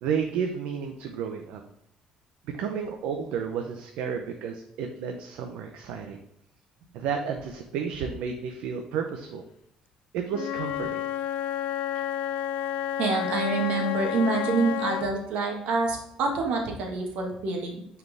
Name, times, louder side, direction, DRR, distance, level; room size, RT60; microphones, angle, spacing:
voice 1, 0.0-1.6 2.5-6.2 6.9-9.4 10.1-11.0, right 6 dB, 90° right, 4 dB, 0.8 m, -32 dB
Wind instrument woodwind instrument, 10.3-15.1, left 10 dB, 70° left, 0.4 m, -30 dB
voice 2, 13.0-17.7, right 3 dB, 70° right, 1 dB, 1.8 m, -27 dB
9.6 x 4.8 x 3.5 m, 0.79 s
cardioid pair, 155°, 2 cm